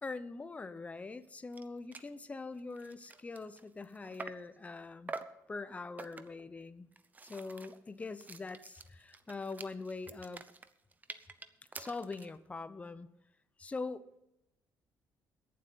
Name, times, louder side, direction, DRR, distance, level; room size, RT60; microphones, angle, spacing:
voice 1, 0.0-5.1 5.5-6.9 7.3-10.4 11.7-13.1 13.6-14.0, left 3 dB, 20° left, 13 dB, 0.7 m, -43 dB
sound 1, 1.2-1.3 1.5-1.7 1.9-2.1 2.6-4.5 5.1-5.4 6.0-6.5 6.9-12.4, right 4 dB, 25° right, 0.8 m, -48 dB
22.0 x 7.6 x 4.1 m, 0.88 s
cardioid pair, 110°, 7 cm